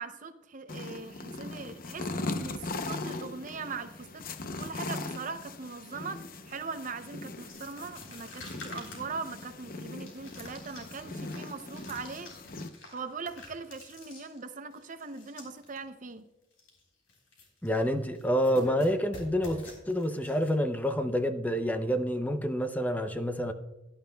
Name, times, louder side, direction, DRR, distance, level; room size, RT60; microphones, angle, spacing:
voice 1, 0.0-4.3 4.6-12.3 12.9-16.2, right 4 dB, 40° right, 10 dB, 0.6 m, -40 dB
sound 1, 0.7-12.7, left 2 dB, 50° left, 0.7 m, -40 dB
sound 2, 7.5-15.8 16.1-16.2 16.5-16.8 17.1-17.9 18.1-20.5, left 2 dB, 80° left, 3.7 m, -48 dB
voice 2, 17.6-23.5, equal, 10° left, 8 dB, 0.5 m, -28 dB
16.5 x 11.0 x 2.3 m, 1.0 s
head